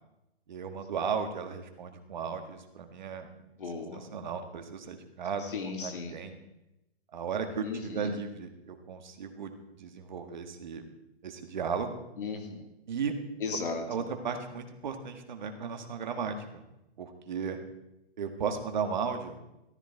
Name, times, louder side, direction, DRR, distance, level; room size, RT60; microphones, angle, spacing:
voice 1, 0.5-3.3 3.9-5.5 5.8-6.4 7.1-9.5 9.8-10.8 11.2-11.9 12.9-13.1 13.9-16.6 17.0-17.6 18.2-19.4, right 6 dB, 45° right, 6 dB, 1.7 m, -35 dB
voice 2, 3.6-4.1 5.4-6.1 7.6-8.1 12.2-12.6 13.4-14.0, left 4 dB, 55° left, 4 dB, 2.6 m, -36 dB
14.0 x 12.5 x 4.5 m, 0.90 s
hypercardioid pair, 170°, 32 cm